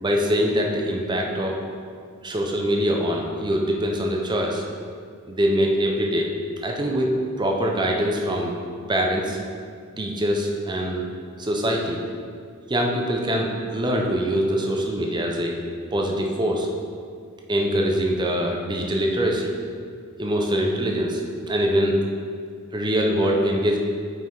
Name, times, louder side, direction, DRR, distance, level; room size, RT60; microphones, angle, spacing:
voice 1, 0.0-1.6 2.2-4.6 5.3-6.3 6.6-7.1 7.4-8.6 8.9-9.4 10.0-11.0 11.4-12.0 12.7-15.5 15.9-16.7 17.5-19.5 20.2-21.2 21.5-22.0 22.7-23.8, equal, 20° right, 0 dB, 0.6 m, -23 dB
5.7 x 4.8 x 4.6 m, 2.2 s
head